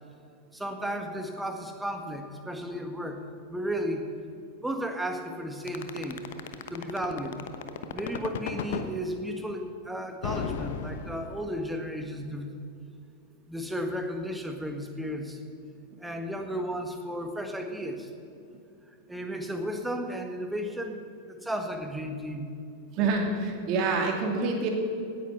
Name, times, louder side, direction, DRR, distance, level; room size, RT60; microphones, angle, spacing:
voice 1, 0.5-3.2 3.5-4.0 4.6-6.2 6.7-7.4 7.9-12.5 13.5-15.4 16.0-18.1 18.9-21.0 21.3-22.5, equal, 5° right, 5 dB, 1.6 m, -34 dB
sound 1, 5.7-8.9 10.2-11.6, left 7 dB, 55° left, 1.0 m, -34 dB
voice 2, 22.9-24.7, right 4 dB, 40° right, 2 dB, 2.5 m, -27 dB
17.5 x 9.8 x 5.9 m, 2.5 s
figure-of-eight pair, 90°, 0 cm